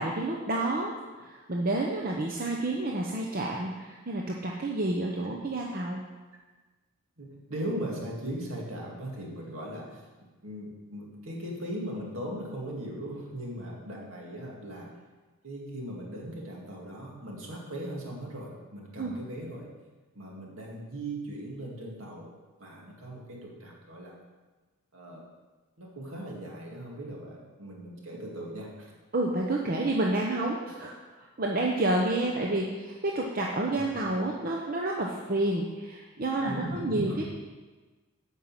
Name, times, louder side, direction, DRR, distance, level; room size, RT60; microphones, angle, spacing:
voice 1, 0.0-6.0 19.0-19.2 29.1-30.9 31.4-37.2, right 2 dB, 40° right, -1 dB, 0.8 m, -29 dB
voice 2, 7.2-10.0 10.4-14.9 15.4-19.7 20.1-22.3 22.6-24.1 24.9-25.3 25.8-28.9 33.7-34.2 36.4-37.2, right 1 dB, 65° right, -2 dB, 2.3 m, -39 dB
9.2 x 5.5 x 7.5 m, 1.3 s
head